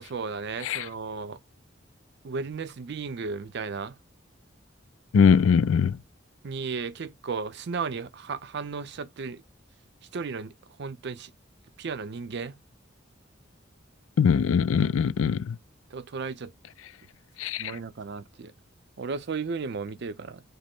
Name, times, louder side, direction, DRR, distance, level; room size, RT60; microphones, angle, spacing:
voice 1, 0.0-1.4 2.2-4.0 6.4-9.4 10.1-10.5 10.8-11.3 11.8-12.6 15.9-16.5 17.6-18.5 19.0-20.4, right 5 dB, 60° right, 0.5 m, -34 dB
voice 2, 5.1-6.0 14.2-15.6 17.4-17.7, left 6 dB, 85° left, 0.4 m, -21 dB
5.2 x 2.0 x 4.3 m
head